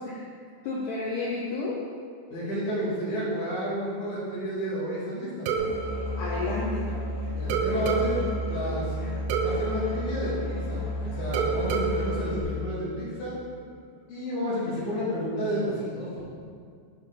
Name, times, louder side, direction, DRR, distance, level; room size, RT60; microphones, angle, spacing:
voice 1, 0.6-1.8 6.2-6.9, left 3 dB, 90° left, -4 dB, 1.8 m, -31 dB
voice 2, 2.3-5.5 7.3-8.9 9.4-10.8 11.1-13.4 14.1-16.1, equal, 50° left, -9 dB, 3.5 m, -31 dB
Musical instrument, 5.5-12.4, equal, 70° left, 1.5 m, -32 dB
sound 1, 5.5-7.1 7.5-10.9 11.3-13.3, right 5 dB, 85° right, 2.4 m, -31 dB
11.5 x 5.4 x 4.1 m, 2.2 s
omnidirectional pair, 4.9 m